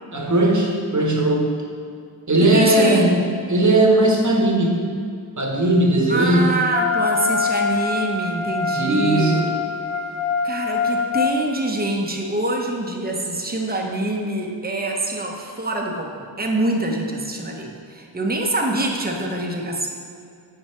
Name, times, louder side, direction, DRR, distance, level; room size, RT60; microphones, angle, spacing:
voice 1, 0.1-1.5 2.3-3.2 3.5-4.9 5.4-6.5 8.7-9.4, right 1 dB, 35° right, 0 dB, 1.3 m, -18 dB
voice 2, 2.5-3.2 6.1-9.5 10.4-19.9, right 1 dB, 20° right, 1 dB, 1.0 m, -25 dB
Wind instrument woodwind instrument, 6.7-11.3, left 4 dB, 80° left, 0.6 m, -24 dB
9.4 x 4.4 x 4.5 m, 2.3 s
wide cardioid pair, 60°, 47 cm